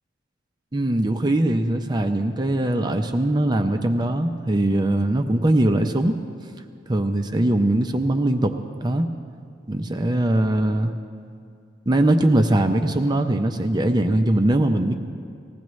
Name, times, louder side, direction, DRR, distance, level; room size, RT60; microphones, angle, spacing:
voice 1, 0.7-6.2 6.9-8.5 8.8-9.1 9.7-10.9 11.9-14.9, right 1 dB, 25° right, 6 dB, 0.5 m, -21 dB
19.5 x 15.0 x 3.1 m, 2.4 s
head